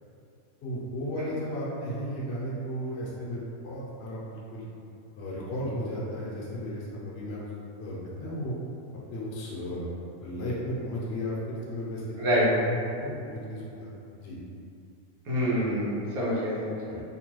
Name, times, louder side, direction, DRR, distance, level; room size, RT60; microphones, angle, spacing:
voice 1, 0.6-4.6 5.2-7.5 7.8-8.5 9.1-9.8 10.2-13.9 14.2-14.4 16.9-17.0, equal, 60° left, -6 dB, 0.8 m, -34 dB
voice 2, 15.2-17.0, equal, 85° right, -8 dB, 1.3 m, -27 dB
2.9 x 2.2 x 3.0 m, 2.6 s
omnidirectional pair, 1.5 m